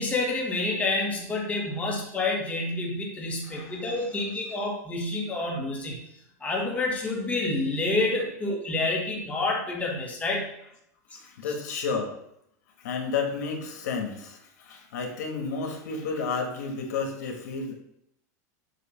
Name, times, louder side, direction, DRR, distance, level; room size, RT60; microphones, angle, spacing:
voice 1, 0.0-6.0 6.4-10.5, left 2 dB, 15° left, -1 dB, 1.5 m, -28 dB
voice 2, 3.4-4.0 11.2-12.2 12.8-17.7, left 5 dB, 80° left, 2 dB, 1.6 m, -32 dB
7.6 x 2.9 x 5.6 m, 0.75 s
supercardioid pair, 135°, 9 cm